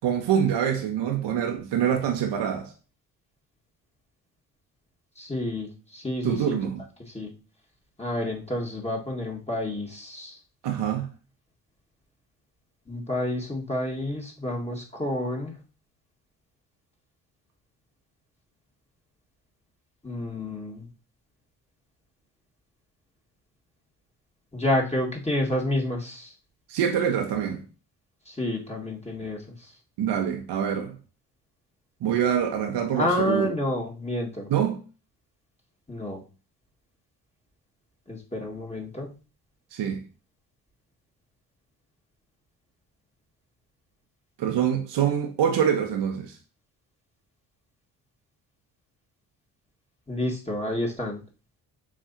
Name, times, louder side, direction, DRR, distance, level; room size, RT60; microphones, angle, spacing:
voice 1, 0.0-2.7 6.2-6.8 10.6-11.1 26.7-27.6 30.0-31.0 32.0-33.5 34.5-34.8 39.7-40.0 44.4-46.4, right 8 dB, 60° right, 1.3 m, -25 dB
voice 2, 5.2-6.6 7.1-7.3 8.0-10.4 12.9-15.5 20.0-20.9 24.5-26.3 28.3-29.4 33.0-34.5 35.9-36.2 38.1-39.1 50.1-51.2, left 1 dB, 15° left, 1.9 m, -29 dB
7.4 x 4.8 x 2.9 m
hypercardioid pair, 45°, 47 cm